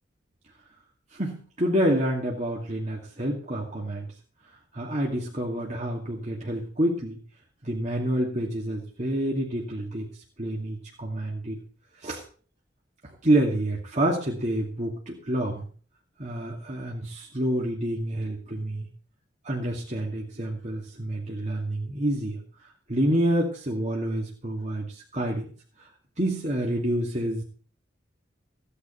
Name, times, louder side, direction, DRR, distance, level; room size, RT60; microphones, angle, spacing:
voice 1, 1.1-4.1 4.7-7.2 7.6-10.1 10.4-11.6 12.0-12.2 13.2-15.7 16.2-18.9 19.4-22.4 22.9-25.5 26.2-27.4, right 1 dB, 40° right, -3 dB, 2.5 m, -28 dB
16.5 x 10.0 x 4.5 m, 0.43 s
head